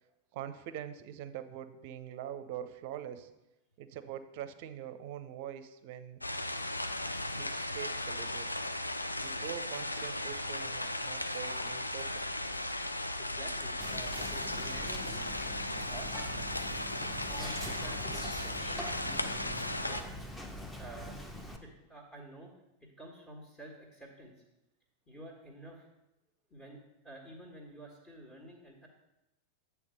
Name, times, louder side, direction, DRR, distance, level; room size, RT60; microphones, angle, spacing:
voice 1, 0.3-3.3 3.8-6.2 7.3-8.5 9.2-12.2, right 10 dB, 50° right, 11 dB, 0.5 m, -44 dB
sound 1, 6.2-20.0, left 1 dB, 85° left, 0.4 m, -36 dB
voice 2, 13.2-15.3 15.8-16.1 17.4-20.1 20.7-21.2 21.6-22.5 23.0-24.4 25.1-25.9 26.5-28.9, right 1 dB, 20° left, -1 dB, 1.6 m, -50 dB
Whispering, 13.8-21.6, equal, 5° left, 0.7 m, -43 dB
8.6 x 3.4 x 6.4 m, 0.93 s
figure-of-eight pair, 90°, 0 cm